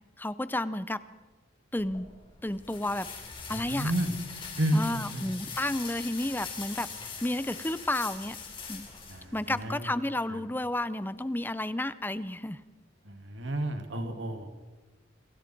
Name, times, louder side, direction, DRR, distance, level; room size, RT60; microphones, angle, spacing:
voice 1, 0.2-1.0 1.7-2.1 2.4-3.1 3.5-3.9 4.7-6.9 7.2-8.4 8.7-8.9 9.3-12.6, left 1 dB, 10° left, 14 dB, 0.6 m, -31 dB
sound 1, 1.8-9.6, left 5 dB, 25° left, 3.9 m, -42 dB
voice 2, 3.5-4.2 4.6-5.3 9.1-9.9 10.3-10.4 13.1-14.5, right 1 dB, 65° right, 6 dB, 2.5 m, -31 dB
28.0 x 26.5 x 4.6 m, 1.3 s
head